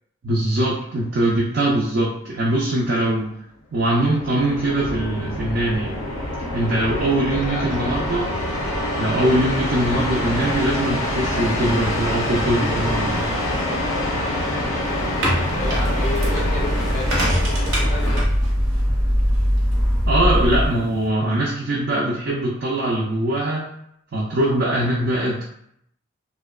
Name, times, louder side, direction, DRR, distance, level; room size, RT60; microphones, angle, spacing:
voice 1, 0.2-3.3 3.7-6.0 6.5-8.3 9.0-13.4 20.1-23.7 24.1-25.4, right 1 dB, 55° right, -5 dB, 0.4 m, -22 dB
sound 1, 3.8-18.2, left 1 dB, 90° left, 0.6 m, -26 dB
voice 2, 6.9-8.3 15.5-18.3, left 2 dB, 40° left, -1 dB, 0.4 m, -33 dB
sound 2, 14.9-21.1, equal, 85° right, 0.8 m, -29 dB
sound 3, 15.6-20.7, equal, 10° right, 0.6 m, -21 dB
2.6 x 2.1 x 2.3 m, 0.72 s
head